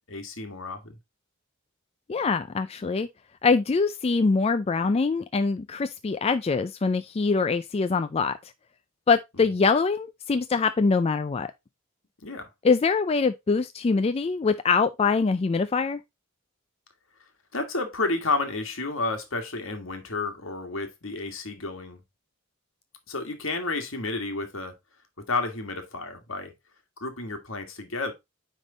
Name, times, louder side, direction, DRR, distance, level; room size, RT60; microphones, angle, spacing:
voice 1, 0.1-0.9 12.2-12.5 17.5-22.0 23.1-24.7 25.2-26.5 27.0-28.1, left 3 dB, 70° left, 1.8 m, -31 dB
voice 2, 2.1-3.1 3.4-8.3 9.1-11.5 12.6-16.0, left 4 dB, 30° left, 0.4 m, -24 dB
9.2 x 3.6 x 3.8 m
head